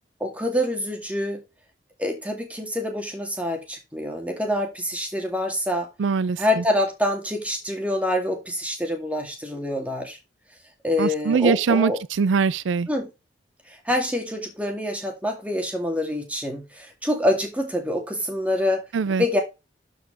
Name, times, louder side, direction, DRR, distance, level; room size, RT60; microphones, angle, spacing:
voice 1, 0.2-1.4 2.0-5.9 6.4-10.2 10.8-12.0 12.9-13.1 13.7-18.8 19.2-19.4, left 1 dB, 5° right, 2.1 m, -26 dB
voice 2, 6.0-6.6 11.0-12.9 18.9-19.2, right 5 dB, 80° right, 0.4 m, -22 dB
12.0 x 4.8 x 3.5 m
head